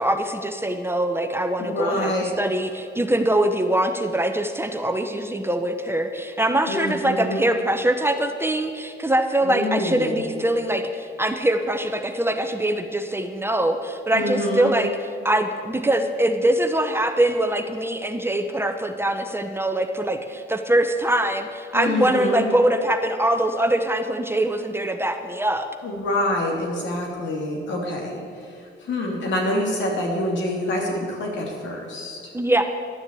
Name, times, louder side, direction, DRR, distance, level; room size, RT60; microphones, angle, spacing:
voice 1, 0.0-14.9 15.2-25.7 32.3-32.6, right 1 dB, 10° right, 6 dB, 0.8 m, -23 dB
voice 2, 1.6-2.3 6.7-7.4 9.4-10.2 14.1-14.7 21.7-22.4 25.8-32.2, left 1 dB, 70° left, -1 dB, 3.1 m, -26 dB
12.0 x 7.1 x 8.3 m, 2.4 s
cardioid pair, 90°, 20 cm